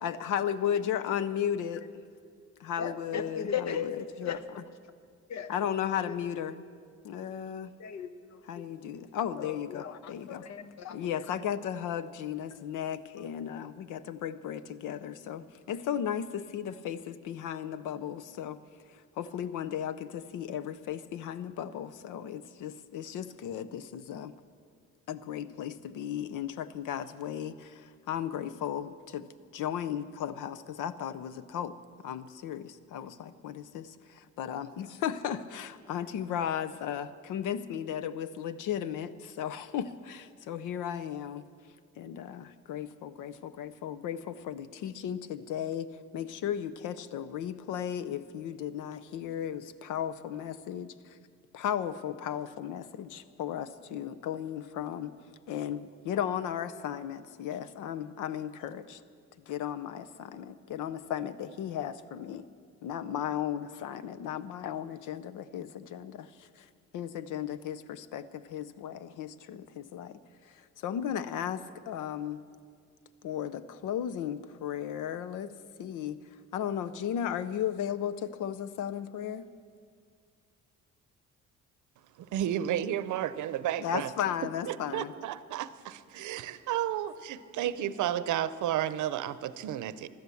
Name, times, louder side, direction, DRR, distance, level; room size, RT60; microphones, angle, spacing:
voice 1, 0.0-1.8 2.6-4.4 5.5-6.6 7.0-7.7 8.5-10.5 10.9-18.6 18.9-24.3 25.1-31.7 32.0-41.4 42.0-51.2 51.5-55.1 55.5-59.0 59.5-62.5 62.8-72.4 73.2-76.2 76.5-79.5 83.8-85.1, left 9 dB, 90° left, 13 dB, 0.7 m, -35 dB
voice 2, 2.8-4.4 5.3-5.5 6.1-6.2 7.8-8.6 9.4-11.3, left 7 dB, 65° left, 11 dB, 1.0 m, -37 dB
voice 3, 82.2-84.1 84.7-90.1, right 11 dB, 75° right, 15 dB, 0.7 m, -32 dB
16.0 x 12.0 x 7.0 m, 2.1 s
cardioid pair, 90°, 30 cm